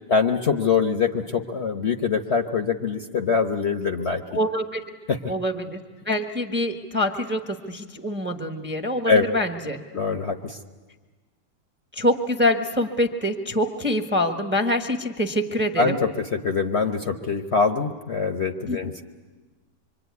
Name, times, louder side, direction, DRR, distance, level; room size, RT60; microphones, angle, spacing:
voice 1, 0.1-4.2 5.1-5.2 9.1-9.2 9.9-10.6 15.8-18.9, left 5 dB, 45° left, 6 dB, 1.1 m, -23 dB
voice 2, 4.3-4.8 5.3-9.8 11.9-16.0 18.7-18.8, left 1 dB, 10° right, 6 dB, 1.0 m, -25 dB
25.5 x 24.5 x 9.5 m, 1.3 s
omnidirectional pair, 1.9 m